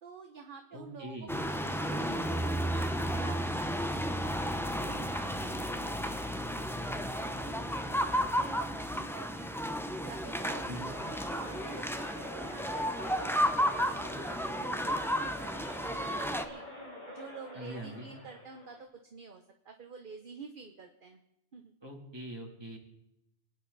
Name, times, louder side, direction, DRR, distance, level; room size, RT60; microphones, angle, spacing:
voice 1, 0.0-4.0 4.3-9.7 10.0-16.6 17.1-21.2 21.5-21.7, right 5 dB, 50° right, 5 dB, 1.1 m, -50 dB
voice 2, 0.7-1.4 10.7-10.9 17.5-18.1 21.8-22.8, right 1 dB, 20° right, -1 dB, 2.9 m, -43 dB
sound 1, 1.3-16.5, equal, 5° left, 0.7 m, -33 dB
sound 2, 10.9-18.8, left 1 dB, 40° left, 3.7 m, -47 dB
27.5 x 9.4 x 4.1 m, 0.85 s
omnidirectional pair, 1.2 m